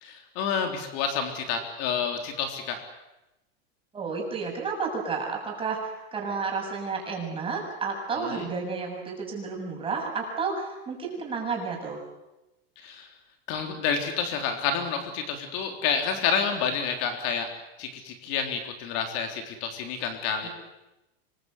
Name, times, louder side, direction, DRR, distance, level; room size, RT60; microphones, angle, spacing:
voice 1, 0.0-2.8 8.2-8.5 12.8-13.1 13.5-17.5 17.8-20.5, left 6 dB, 50° left, 5 dB, 3.6 m, -29 dB
voice 2, 3.9-12.0 20.4-20.5, right 4 dB, 15° right, 0 dB, 7.3 m, -31 dB
26.0 x 23.0 x 8.1 m, 0.96 s
supercardioid pair, 150°, 31 cm